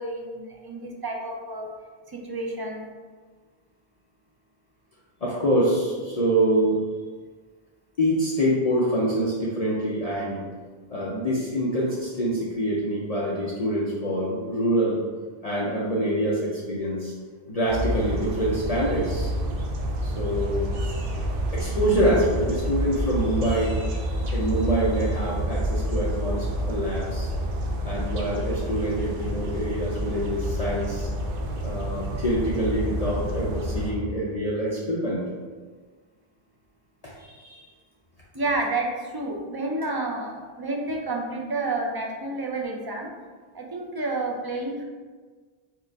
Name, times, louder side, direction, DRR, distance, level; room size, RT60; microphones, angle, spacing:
voice 1, 0.0-1.7 2.1-2.9 38.3-43.1 43.5-44.8, right 2 dB, 30° right, 0 dB, 0.5 m, -30 dB
voice 2, 5.2-6.8 8.0-10.4 10.9-15.0 15.4-17.1 17.5-19.3 20.0-20.7 21.5-27.3 27.8-31.1 31.6-35.2 37.0-37.7, right 1 dB, 45° left, -6 dB, 0.6 m, -25 dB
sound 1, 17.7-33.9, equal, 65° right, 0.8 m, -28 dB
4.8 x 2.5 x 4.5 m, 1.5 s
omnidirectional pair, 1.0 m